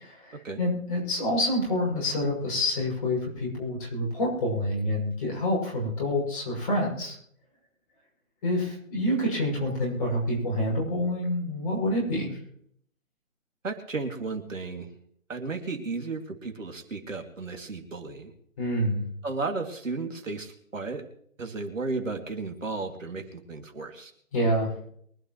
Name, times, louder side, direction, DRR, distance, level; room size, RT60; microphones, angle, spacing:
voice 1, 0.0-7.1 8.4-12.4 18.6-19.0 24.3-24.7, left 1 dB, 25° left, -4 dB, 6.6 m, -27 dB
voice 2, 13.6-14.9 15.3-18.3 19.2-21.0 21.4-24.1, right 3 dB, 70° right, 5 dB, 2.7 m, -34 dB
24.0 x 11.5 x 3.2 m, 0.67 s
figure-of-eight pair, 150°, 40 cm